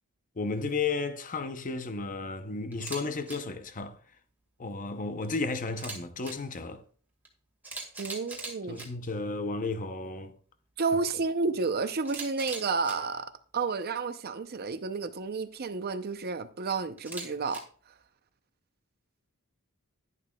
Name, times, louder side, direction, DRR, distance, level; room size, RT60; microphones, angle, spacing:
voice 1, 0.4-4.0 4.6-6.8 8.7-10.3, left 3 dB, 35° left, 0.7 m, -33 dB
Camera, 2.7-3.0 3.3-3.4 5.7-6.3 7.2-7.3 7.6-8.9 12.0-12.9 17.0-17.6, right 3 dB, 10° right, 1.8 m, -40 dB
voice 2, 8.0-8.8 10.8-17.6, right 4 dB, 45° right, 0.6 m, -31 dB
11.0 x 11.0 x 2.3 m
head